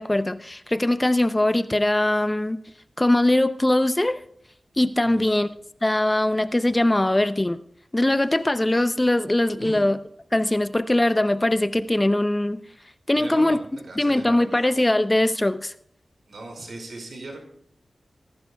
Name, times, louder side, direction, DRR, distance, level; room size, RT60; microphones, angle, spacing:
voice 1, 0.0-2.6 3.0-4.2 4.8-5.5 5.8-7.6 7.9-10.0 10.3-12.6 13.1-13.6 14.0-15.7, left 1 dB, 20° left, 12 dB, 0.6 m, -21 dB
voice 2, 5.0-5.5 9.6-9.8 13.2-14.6 16.3-17.4, right 2 dB, 80° right, 2 dB, 4.9 m, -39 dB
24.0 x 11.5 x 2.3 m, 0.70 s
wide cardioid pair, 65°, 0 cm